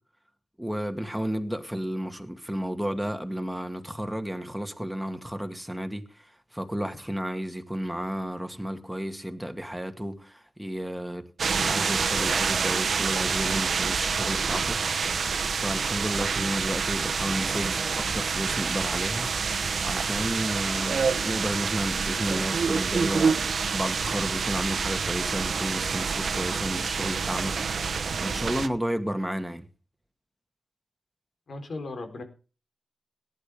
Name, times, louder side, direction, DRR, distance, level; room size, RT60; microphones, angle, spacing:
voice 1, 0.6-11.2 11.6-14.8 15.5-19.3 19.8-27.9 28.2-29.7, equal, 5° right, 2.1 m, -32 dB
sound 1, 11.4-28.7, right 5 dB, 75° right, 1.0 m, -27 dB
voice 2, 31.5-32.2, left 3 dB, 70° left, 3.9 m, -36 dB
18.5 x 11.0 x 3.6 m
wide cardioid pair, 80°, 0 cm